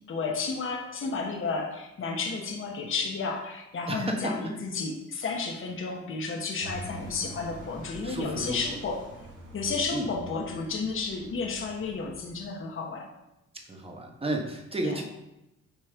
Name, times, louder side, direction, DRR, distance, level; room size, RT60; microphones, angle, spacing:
voice 1, 0.1-9.1 9.5-13.1 14.8-15.0, left 4 dB, 45° left, 2 dB, 1.2 m, -32 dB
voice 2, 3.9-4.5 8.0-8.6 9.9-10.1 13.7-15.0, right 1 dB, 20° right, 2 dB, 1.4 m, -32 dB
sound 1, 6.6-12.4, right 2 dB, 80° right, 2.7 m, -45 dB
9.1 x 3.2 x 5.1 m, 0.92 s
cardioid pair, 90°, 30 cm